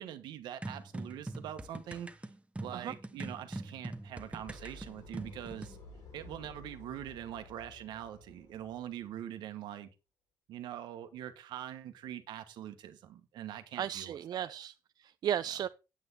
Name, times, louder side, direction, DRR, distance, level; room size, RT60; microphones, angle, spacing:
voice 1, 0.0-2.1 2.6-5.8 6.1-9.9 10.5-14.5, right 11 dB, 85° right, 1.3 m, -43 dB
sound 1, 0.6-5.8, right 2 dB, 15° right, 1.2 m, -43 dB
sound 2, 3.9-9.1, left 2 dB, 85° left, 6.0 m, -53 dB
voice 2, 13.8-15.7, right 10 dB, 65° right, 0.4 m, -35 dB
8.8 x 8.0 x 4.1 m
supercardioid pair, 65°, 7 cm